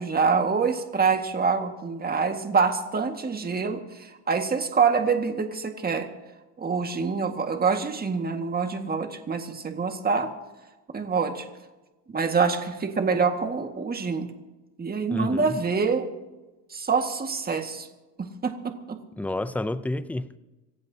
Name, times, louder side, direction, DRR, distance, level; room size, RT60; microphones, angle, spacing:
voice 1, 0.0-6.1 6.6-10.3 10.9-11.4 12.1-14.3 14.8-16.1 16.7-17.9 18.2-19.0, right 5 dB, 25° right, 1.8 m, -26 dB
voice 2, 15.1-15.6 19.2-20.4, left 1 dB, 5° left, 0.6 m, -30 dB
26.5 x 15.0 x 2.8 m
cardioid pair, 115°, 38 cm